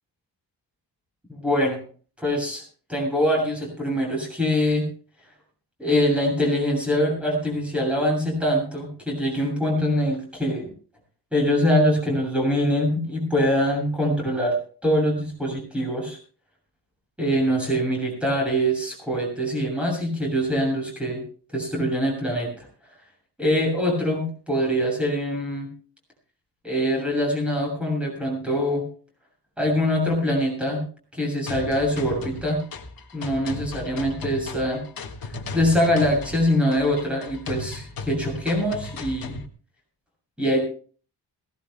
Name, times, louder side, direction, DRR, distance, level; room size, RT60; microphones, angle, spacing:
voice 1, 1.3-1.8 2.2-2.6 2.9-4.8 5.8-10.7 11.3-14.6 14.8-16.2 17.2-21.2 21.5-22.7 23.4-25.7 26.6-28.8 29.6-30.8 31.1-32.6 33.1-34.8 35.2-39.3 40.4-40.6, equal, 5° right, -1 dB, 7.2 m, -23 dB
sound 1, 31.5-39.5, left 3 dB, 55° left, 1.6 m, -36 dB
21.5 x 18.0 x 2.2 m, 0.41 s
wide cardioid pair, 165°, 41 cm